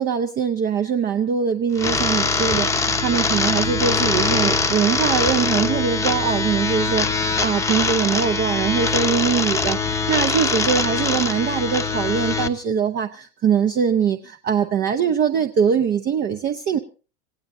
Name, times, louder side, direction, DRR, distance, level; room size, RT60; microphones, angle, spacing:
voice 1, 0.0-16.8, right 7 dB, 25° right, 7 dB, 0.8 m, -22 dB
sound 1, 1.8-12.5, left 4 dB, 5° left, 1.0 m, -22 dB
28.0 x 16.5 x 2.6 m, 0.37 s
supercardioid pair, 140°, 41 cm